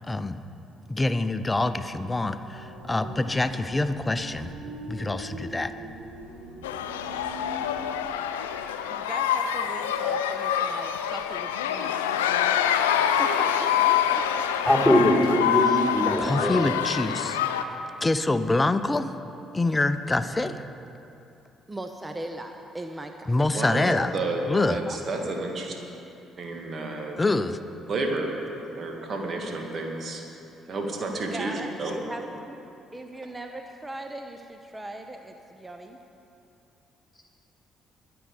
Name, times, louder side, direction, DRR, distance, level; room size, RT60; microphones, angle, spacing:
voice 1, 0.1-0.4 0.9-4.5 4.9-5.7 16.2-17.4 18.0-19.1 19.5-20.6 23.3-24.1 24.5-24.8 27.2-27.6, left 2 dB, 20° left, 11 dB, 0.7 m, -25 dB
sound 1, 2.2-8.0, right 1 dB, 90° right, 1.9 m, -42 dB
sound 2, 6.6-17.6, left 9 dB, 80° left, 0.5 m, -26 dB
voice 2, 8.9-12.2 13.0-14.4 18.3-18.4 21.7-23.9 24.5-25.0 31.3-32.6 32.9-36.0, right 1 dB, 20° right, 5 dB, 0.9 m, -39 dB
voice 3, 14.7-16.6, left 1 dB, ahead, -4 dB, 3.6 m, -21 dB
voice 4, 23.5-24.4 24.7-25.8 26.4-27.2 27.9-28.3 28.7-30.2 30.7-31.9, right 2 dB, 45° right, 2 dB, 2.2 m, -31 dB
22.5 x 7.9 x 5.0 m, 2.8 s
figure-of-eight pair, 45°, 0 cm